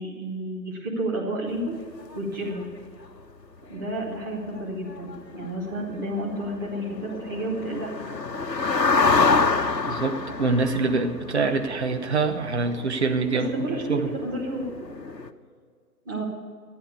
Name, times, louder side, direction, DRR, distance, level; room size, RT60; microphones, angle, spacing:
voice 1, 0.0-1.8 2.1-2.6 3.7-7.9 12.6-12.7 13.3-14.6 16.0-16.2, right 1 dB, 10° right, -5 dB, 1.4 m, -31 dB
sound 1, 1.6-1.7 2.1-2.2 2.4-2.6 3.0-3.3 3.7-3.8 4.2-4.3 4.4-4.6 4.9-15.3, left 4 dB, 85° left, 1.0 m, -28 dB
voice 2, 9.9-14.1, right 4 dB, 40° right, 6 dB, 1.0 m, -25 dB
13.5 x 10.0 x 6.9 m, 2.1 s
figure-of-eight pair, 150°, 49 cm